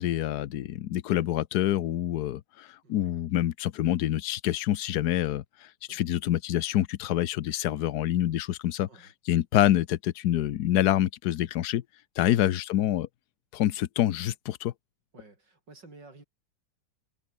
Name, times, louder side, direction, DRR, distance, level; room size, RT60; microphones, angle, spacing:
voice 1, 0.0-8.9 9.3-11.8 12.2-13.1 13.5-14.7, left 13 dB, 70° left, 1.3 m, -26 dB
voice 2, 15.1-16.2, right 3 dB, 85° right, 6.0 m, -52 dB
omnidirectional pair, 1.9 m